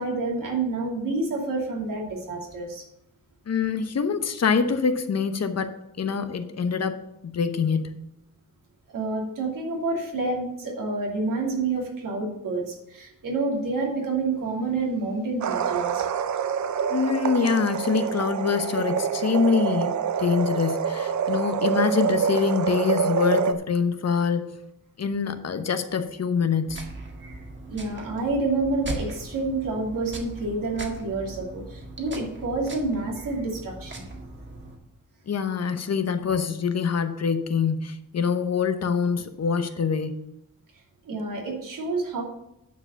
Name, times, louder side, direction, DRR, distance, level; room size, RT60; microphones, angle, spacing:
voice 1, 0.0-2.8 8.9-16.1 27.2-27.4 27.7-34.0 41.0-42.2, right 3 dB, 90° right, 0 dB, 2.8 m, -28 dB
voice 2, 3.5-8.0 16.9-24.5 25.0-26.8 35.3-40.2, left 6 dB, 55° left, 9 dB, 0.9 m, -25 dB
sound 1, 15.4-23.5, right 7 dB, 65° right, 0.7 m, -26 dB
sound 2, 26.7-34.7, right 2 dB, 35° right, 1.8 m, -39 dB
9.6 x 4.9 x 6.8 m, 0.82 s
wide cardioid pair, 120°, 31 cm